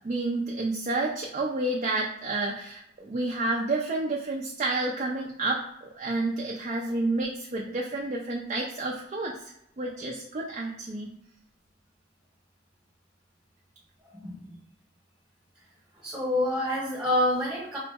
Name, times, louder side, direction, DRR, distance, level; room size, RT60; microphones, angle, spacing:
voice 1, 0.0-11.1, right 2 dB, 35° right, -2 dB, 0.3 m, -30 dB
voice 2, 16.0-17.8, left 1 dB, 5° right, -6 dB, 1.0 m, -27 dB
3.8 x 2.0 x 3.4 m, 0.78 s
head